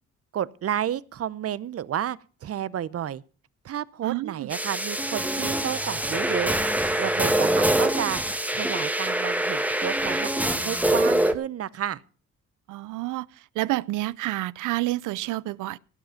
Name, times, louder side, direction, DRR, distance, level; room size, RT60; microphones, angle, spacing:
voice 1, 0.3-3.2 3.6-8.2 8.5-10.3 10.6-12.0, right 10 dB, 50° right, 0.8 m, -31 dB
voice 2, 4.0-4.5 12.7-13.3 13.6-15.8, right 18 dB, 85° right, 0.6 m, -29 dB
sound 1, 4.5-11.3, right 1 dB, 5° right, 1.3 m, -24 dB
17.0 x 8.0 x 5.7 m
cardioid pair, 90°, 30 cm